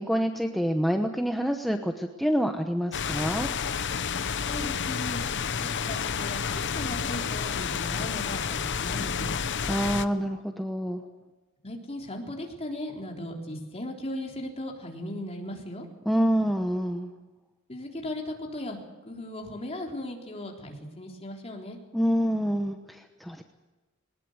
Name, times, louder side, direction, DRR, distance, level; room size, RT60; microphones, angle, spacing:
voice 1, 0.0-3.5 9.7-11.0 16.1-17.1 21.9-23.4, equal, ahead, 4 dB, 1.0 m, -27 dB
sound 1, 2.9-10.1, left 6 dB, 60° left, 0.9 m, -30 dB
voice 2, 4.4-5.2 5.6-9.3 11.6-15.9 17.7-18.8 19.0-21.8, left 1 dB, 30° left, 1 dB, 3.8 m, -37 dB
21.0 x 19.5 x 8.1 m, 1.2 s
head